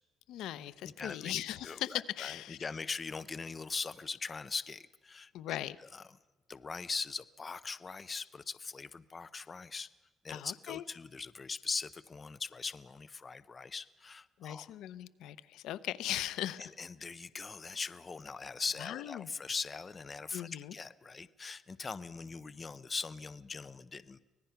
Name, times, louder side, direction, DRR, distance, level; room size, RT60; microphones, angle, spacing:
voice 1, 0.3-2.6 5.3-5.8 10.3-10.8 14.4-16.6 18.8-19.3 20.3-20.7, left 13 dB, 80° left, 16 dB, 0.7 m, -39 dB
voice 2, 0.8-1.3 1.6-6.2 6.5-9.9 10.2-14.7 16.6-24.2, left 4 dB, 25° left, 15 dB, 0.6 m, -41 dB
25.0 x 18.5 x 5.8 m, 1.2 s
cardioid pair, 130°, 0 cm